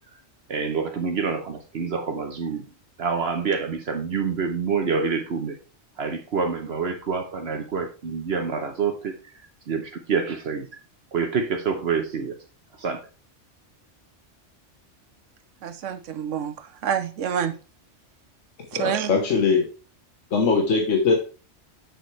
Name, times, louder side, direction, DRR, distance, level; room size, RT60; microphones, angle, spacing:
voice 1, 0.5-2.6 3.0-5.6 6.0-9.1 9.7-10.7 11.1-12.4 12.8-13.0, right 5 dB, 60° right, 1.1 m, -27 dB
voice 2, 15.6-17.5 18.7-19.1, right 8 dB, 90° right, 1.1 m, -28 dB
voice 3, 18.7-19.7 20.3-21.1, left 4 dB, 85° left, 1.5 m, -21 dB
7.8 x 6.8 x 3.2 m
omnidirectional pair, 1.2 m